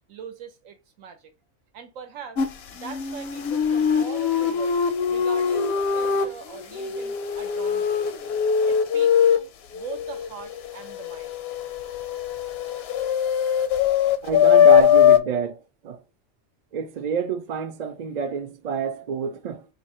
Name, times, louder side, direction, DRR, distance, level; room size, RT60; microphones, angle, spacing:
voice 1, 0.1-1.3 1.7-2.5 2.7-4.8 5.1-8.1 8.7-11.4, right 6 dB, 85° right, 1.2 m, -41 dB
sound 1, 2.4-2.5 2.8-6.3 6.6-9.4 9.7-15.2, left 8 dB, 65° left, 0.7 m, -21 dB
voice 2, 14.2-16.0 16.7-19.7, right 7 dB, 65° right, 0.4 m, -28 dB
2.7 x 2.7 x 4.1 m
omnidirectional pair, 1.4 m